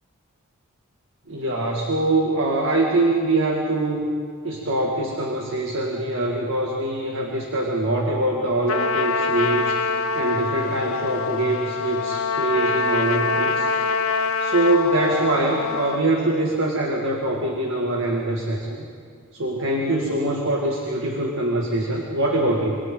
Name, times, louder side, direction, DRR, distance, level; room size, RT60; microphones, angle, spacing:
voice 1, 1.3-4.1 4.4-13.7 14.4-18.9 19.3-22.8, right 2 dB, 65° right, -1 dB, 2.2 m, -23 dB
Trumpet, 8.7-16.0, left 4 dB, 75° left, 1.0 m, -24 dB
27.5 x 25.0 x 4.0 m, 2.3 s
head